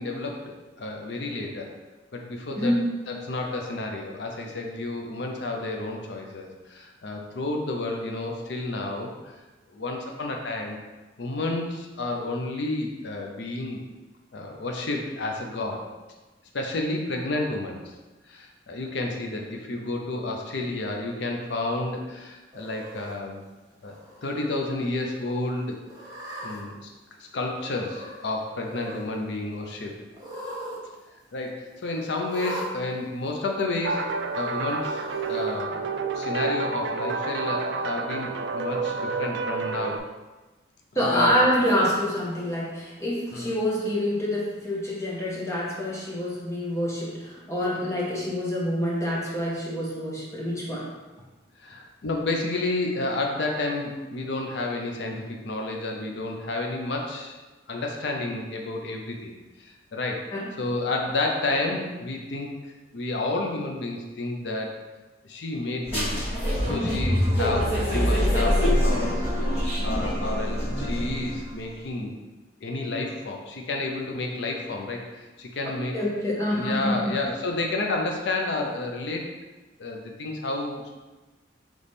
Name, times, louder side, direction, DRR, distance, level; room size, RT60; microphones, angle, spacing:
voice 1, 0.0-1.7 2.1-2.7 3.1-9.3 9.7-10.8 11.2-13.8 14.3-15.9 16.5-17.8 18.3-23.4 23.8-23.9 24.2-25.8 26.4-26.8 27.2-29.9 31.3-35.0 35.3-35.9 36.1-40.0 41.1-41.3 43.3-43.5 51.6-57.4 57.7-59.3 59.6-60.2 60.6-62.6 62.9-64.8 65.2-66.3 66.7-69.3 69.8-72.2 72.6-76.0 76.5-79.3 79.8-80.9, left 2 dB, 70° left, 1 dB, 0.5 m, -30 dB
Cat, 22.5-23.1 23.8-24.3 24.7-24.8 25.9-26.6 27.6-28.2 28.5-29.1 30.1-30.8 31.1-31.2 32.3-32.7 33.6-33.7 34.8-35.4, equal, 20° right, 0.8 m, -38 dB
sound 1, 33.8-40.0, right 4 dB, 70° right, 0.3 m, -29 dB
voice 2, 40.9-51.0 60.3-60.5 75.6-77.1, equal, 15° left, -5 dB, 0.6 m, -26 dB
sound 2, 65.9-71.4, equal, 35° left, 1.3 m, -24 dB
4.1 x 3.1 x 3.4 m, 1.2 s
head